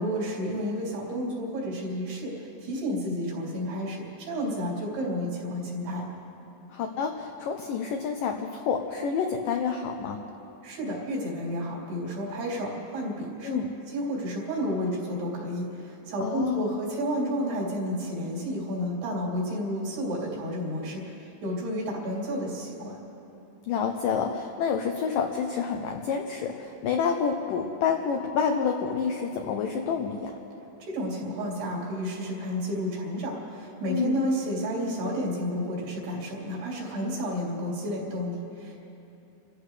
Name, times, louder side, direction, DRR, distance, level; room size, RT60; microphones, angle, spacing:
voice 1, 0.0-6.1 10.6-13.6 13.9-23.0 30.8-38.8, equal, 70° right, -4 dB, 5.1 m, -31 dB
voice 2, 6.7-10.2 13.4-13.7 16.2-16.7 23.7-30.4 33.9-34.2, left 6 dB, 90° left, 3 dB, 1.9 m, -28 dB
30.0 x 14.5 x 3.3 m, 2.8 s
omnidirectional pair, 4.9 m